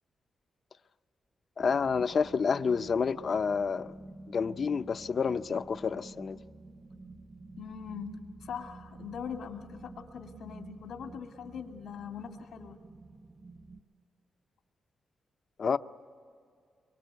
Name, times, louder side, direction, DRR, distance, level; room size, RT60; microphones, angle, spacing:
voice 1, 1.6-3.9 4.3-6.4 15.6-15.8, left 5 dB, 50° left, 0.5 m, -29 dB
sound 1, 1.6-13.8, right 2 dB, 20° right, 0.8 m, -50 dB
voice 2, 7.6-12.8, left 7 dB, 90° left, 1.9 m, -42 dB
24.5 x 23.0 x 8.0 m
cardioid pair, 120°, 0 cm